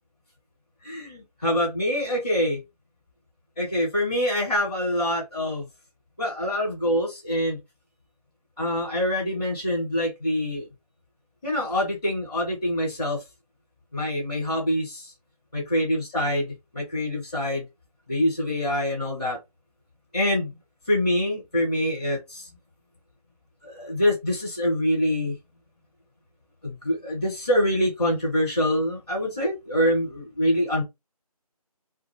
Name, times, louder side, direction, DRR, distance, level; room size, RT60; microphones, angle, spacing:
voice 1, 0.8-2.6 3.6-5.7 6.2-7.6 8.6-10.7 11.4-13.2 13.9-15.1 15.5-17.6 18.1-19.4 20.1-20.5 20.9-22.5 23.6-25.3 26.6-30.8, left 1 dB, 5° left, 0.7 m, -25 dB
2.2 x 2.0 x 3.6 m
figure-of-eight pair, 170°, 20 cm